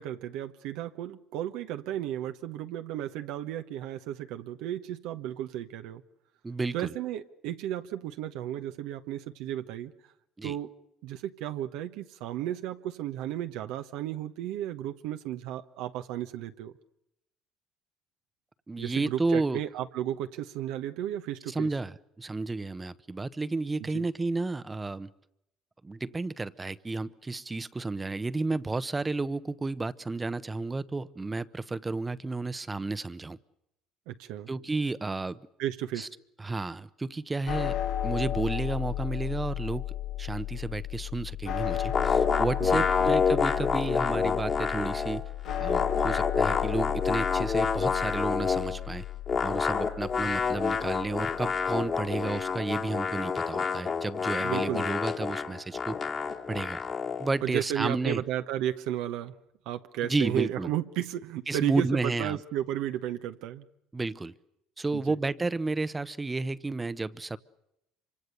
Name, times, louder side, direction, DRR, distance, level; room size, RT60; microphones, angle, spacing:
voice 1, 0.0-6.0 6.7-9.9 10.4-10.7 11.0-16.7 18.8-21.7 23.8-24.1 34.1-34.5 35.6-36.1 42.6-43.1 54.4-54.8 57.4-59.3 59.7-63.7 64.9-65.2, right 12 dB, 75° right, 1.0 m, -34 dB
voice 2, 6.4-6.9 10.4-10.6 18.7-19.6 21.5-25.1 25.8-33.4 34.5-35.4 36.0-36.1 36.4-37.8 38.0-39.9 40.2-45.3 45.6-49.0 49.4-56.0 56.5-56.8 57.2-58.2 60.1-60.7 61.5-62.4 63.9-64.3 64.8-67.4, right 3 dB, 20° right, 1.0 m, -32 dB
sound 1, 37.5-51.7, left 12 dB, 75° left, 3.5 m, -34 dB
sound 2, 41.9-45.2 45.5-48.8 49.3-57.3, left 5 dB, 45° left, 2.6 m, -28 dB
25.5 x 25.0 x 6.8 m
supercardioid pair, 75°, 0 cm